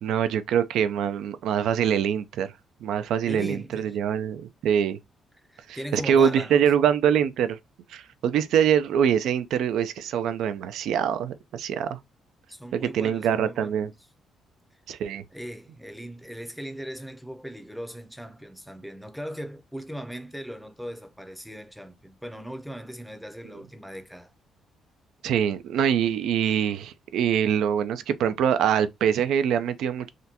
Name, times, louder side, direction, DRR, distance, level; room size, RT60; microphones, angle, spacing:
voice 1, 0.0-2.5 2.8-5.0 5.7-7.6 7.9-12.0 12.7-13.9 14.9-15.2 25.2-30.1, right 8 dB, 80° right, 0.4 m, -24 dB
voice 2, 3.3-4.0 5.5-6.6 12.5-13.9 15.3-24.3, equal, ahead, 0.6 m, -38 dB
3.6 x 2.2 x 2.7 m
cardioid pair, 90°, 0 cm